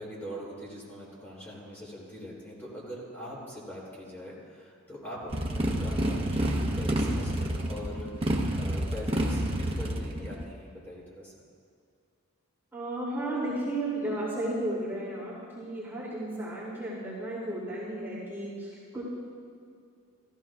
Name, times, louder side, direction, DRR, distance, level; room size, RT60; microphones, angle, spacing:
voice 1, 0.0-11.3, equal, 10° left, -7 dB, 3.2 m, -42 dB
Motorcycle, 5.3-10.4, right 1 dB, 25° right, 0.9 m, -29 dB
voice 2, 12.7-19.0, right 1 dB, 10° right, -9 dB, 2.8 m, -33 dB
15.0 x 14.5 x 2.4 m, 2.3 s
head